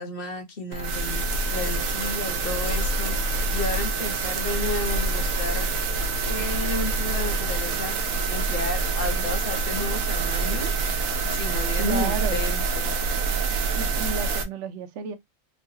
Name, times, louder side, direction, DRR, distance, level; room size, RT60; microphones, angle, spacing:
voice 1, 0.0-5.7 6.2-10.7 11.3-12.9, left 2 dB, 50° left, 1.0 m, -32 dB
sound 1, 0.7-14.4, right 3 dB, 90° right, 1.1 m, -26 dB
voice 2, 11.8-12.4 13.7-15.2, right 6 dB, 65° right, 0.9 m, -32 dB
3.1 x 2.3 x 2.7 m
omnidirectional pair, 1.4 m